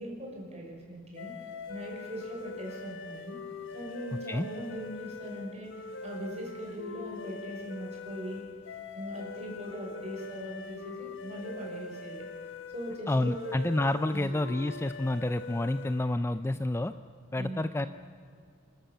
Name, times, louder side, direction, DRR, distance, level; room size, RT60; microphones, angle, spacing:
voice 1, 0.0-1.4 1.7-3.4 3.7-8.5 8.9-12.3 12.7-13.6 14.1-14.3 16.0-16.1 17.3-17.7, equal, 35° right, -1 dB, 5.7 m, -40 dB
sound 1, 1.1-16.2, left 4 dB, 65° left, 1.3 m, -43 dB
voice 2, 13.1-16.9 17.3-17.9, left 1 dB, 15° left, 11 dB, 0.4 m, -29 dB
29.0 x 13.0 x 7.1 m, 2.2 s
head